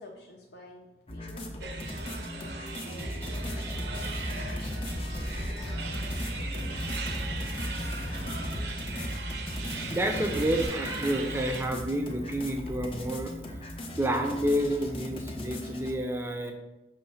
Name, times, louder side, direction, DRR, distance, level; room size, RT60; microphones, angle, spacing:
voice 1, 0.0-5.0 5.5-5.6, left 1 dB, 75° left, -3 dB, 0.8 m, -50 dB
sound 1, 1.1-15.9, left 1 dB, 30° left, 0.7 m, -39 dB
sound 2, 1.6-11.6, right 4 dB, 80° right, 0.7 m, -40 dB
sound 3, 3.0-10.7, equal, 15° left, 1.1 m, -36 dB
voice 2, 9.9-13.3 14.0-16.5, right 1 dB, 15° right, 4 dB, 0.6 m, -29 dB
5.7 x 3.1 x 5.6 m, 1.0 s
head